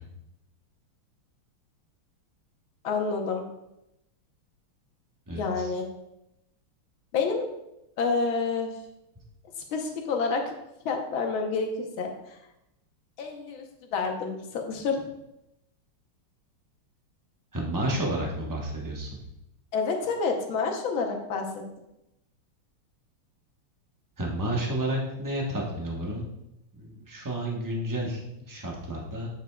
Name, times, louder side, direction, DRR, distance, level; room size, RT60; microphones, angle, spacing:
voice 1, 2.8-3.4 5.3-5.9 7.1-7.5 8.0-8.7 9.7-10.5 10.9-12.4 13.2-13.7 13.9-15.0 19.7-21.5, left 4 dB, 70° left, 2 dB, 1.7 m, -28 dB
voice 2, 5.3-5.7 17.5-19.1 24.2-26.3 26.7-29.3, right 1 dB, 20° right, -2 dB, 0.5 m, -31 dB
7.8 x 7.2 x 2.3 m, 0.88 s
omnidirectional pair, 2.4 m